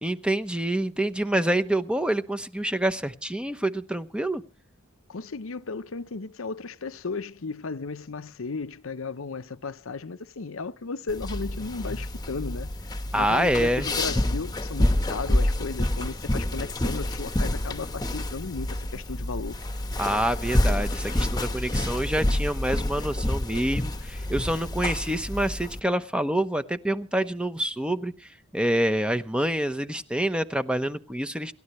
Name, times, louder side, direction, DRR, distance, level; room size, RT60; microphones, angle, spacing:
voice 1, 0.0-4.4 13.1-13.9 20.0-28.1 28.5-31.5, right 1 dB, 5° right, 0.9 m, -27 dB
voice 2, 5.1-12.7 13.2-19.6, left 4 dB, 65° left, 0.8 m, -35 dB
sound 1, 11.1-25.8, left 1 dB, 20° left, 1.2 m, -28 dB
28.0 x 13.0 x 3.1 m
head